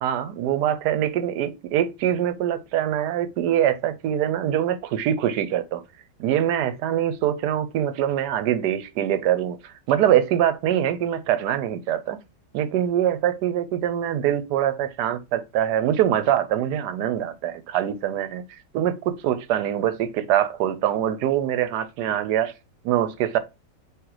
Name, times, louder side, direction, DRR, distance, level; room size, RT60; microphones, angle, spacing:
voice 1, 0.0-5.8 6.2-12.2 12.5-18.4 18.7-22.5 22.8-23.4, right 11 dB, 75° right, 1.1 m, -24 dB
3.8 x 2.9 x 4.6 m
omnidirectional pair, 1.9 m